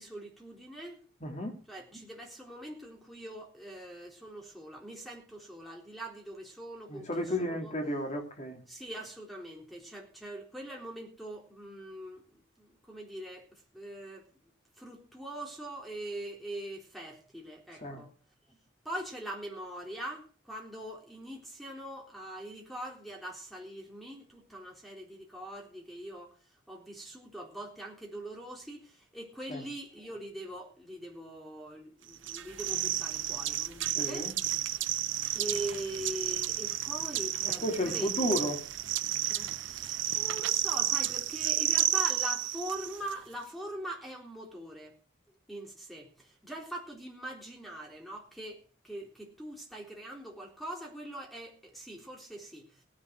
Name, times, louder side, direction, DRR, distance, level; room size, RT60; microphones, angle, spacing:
voice 1, 0.0-1.0 1.7-7.7 8.7-14.3 14.8-18.1 18.5-18.6 18.8-26.3 26.7-34.3 35.3-38.3 39.3-45.0 45.5-52.8, right 1 dB, ahead, 3.8 m, -42 dB
voice 2, 1.2-1.5 6.9-8.6 17.8-18.0 29.5-29.6 34.0-34.3 37.6-38.6, equal, 35° left, 2.9 m, -32 dB
sound 1, 32.2-43.1, right 12 dB, 65° right, 0.7 m, -32 dB
17.5 x 10.5 x 4.7 m
head